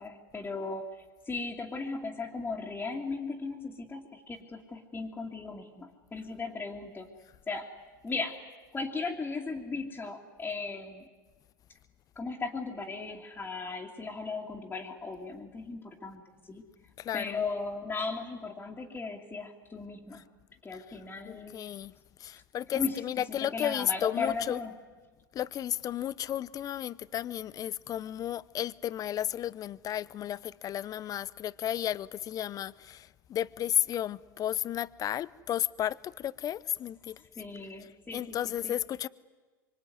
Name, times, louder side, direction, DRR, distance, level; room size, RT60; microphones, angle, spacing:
voice 1, 0.0-7.1 7.5-7.7 8.0-8.4 8.7-11.1 12.2-16.6 17.1-20.3 20.6-21.6 22.7-24.8 37.2-38.4 38.6-38.7, left 4 dB, 15° left, 2.7 m, -37 dB
voice 2, 17.0-17.4 21.3-21.9 22.2-24.6 25.3-37.2 38.1-39.1, left 11 dB, 30° left, 0.8 m, -33 dB
25.0 x 24.5 x 9.6 m
hypercardioid pair, 110°, 11 cm